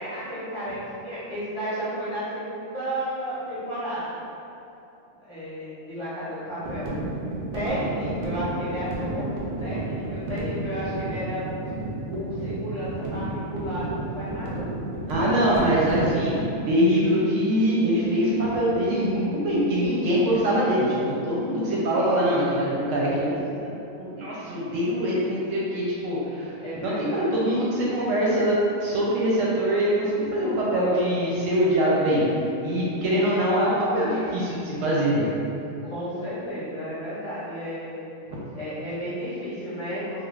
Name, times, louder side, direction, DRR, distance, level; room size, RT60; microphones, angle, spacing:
voice 1, 0.0-4.2 5.2-6.9 7.5-11.5 12.0-14.7 20.4-20.6 21.5-22.1 26.6-27.2 33.5-33.6 35.8-38.1 38.5-40.2, equal, 25° left, -13 dB, 0.7 m, -33 dB
sound 1, 6.6-16.3, right 2 dB, 90° right, 0.4 m, -31 dB
voice 2, 15.1-23.6 24.0-32.2 32.6-35.3, equal, 70° right, -6 dB, 0.9 m, -23 dB
2.3 x 2.3 x 3.1 m, 2.8 s
omnidirectional pair, 1.5 m